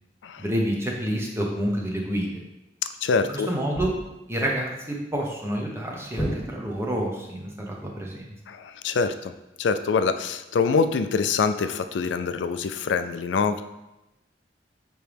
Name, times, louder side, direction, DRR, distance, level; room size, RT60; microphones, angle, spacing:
voice 1, 0.4-2.4 3.3-3.9 4.3-8.2, equal, 15° right, -1 dB, 1.0 m, -28 dB
voice 2, 3.0-3.5 8.5-9.3 9.6-13.6, left 5 dB, 85° left, 10 dB, 0.4 m, -25 dB
sound 1, 3.7-4.3 6.2-7.0, equal, 15° left, 1.5 m, -32 dB
8.9 x 3.1 x 3.4 m, 0.97 s
head